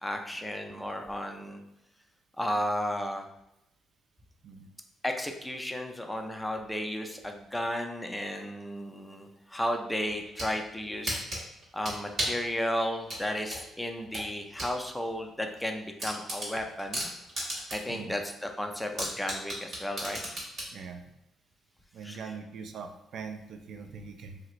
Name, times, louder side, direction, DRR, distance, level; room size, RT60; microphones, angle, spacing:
voice 1, 0.0-1.6 2.4-3.3 5.0-11.3 11.7-17.1 17.7-20.2 22.0-22.2, equal, 5° left, 3 dB, 0.4 m, -33 dB
sound 1, 10.1-10.5 11.1-12.4 13.1-14.7 15.1-15.2 15.6-15.7 16.0-18.0 18.3-18.4 19.0-20.7, right 1 dB, 50° right, 1.2 m, -34 dB
voice 2, 20.7-21.0 21.9-24.4, right 5 dB, 70° right, 5 dB, 0.3 m, -42 dB
2.8 x 2.5 x 3.0 m, 0.84 s
cardioid pair, 90°, 0 cm